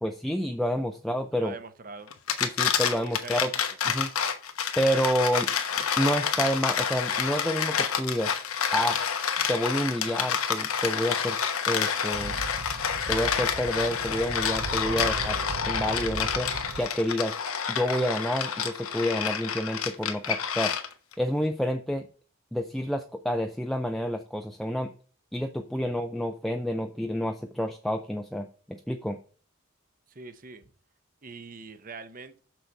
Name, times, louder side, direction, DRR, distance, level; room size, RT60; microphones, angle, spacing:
voice 1, 0.0-1.5 2.4-3.5 3.9-4.1 4.8-5.5 6.0-8.3 8.7-9.0 9.5-11.4 11.7-12.4 13.1-16.5 16.8-17.4 17.7-20.7 21.2-22.1 22.5-24.9 25.3-29.2, equal, ahead, 5 dB, 0.4 m, -29 dB
voice 2, 1.3-2.1 2.9-3.4 30.1-30.6 31.2-32.4, right 4 dB, 40° right, 10 dB, 0.8 m, -43 dB
sound 1, 2.1-21.1, left 7 dB, 85° left, 1.1 m, -28 dB
sound 2, 12.1-17.1, right 3 dB, 85° right, 0.9 m, -38 dB
6.7 x 6.3 x 4.4 m, 0.41 s
head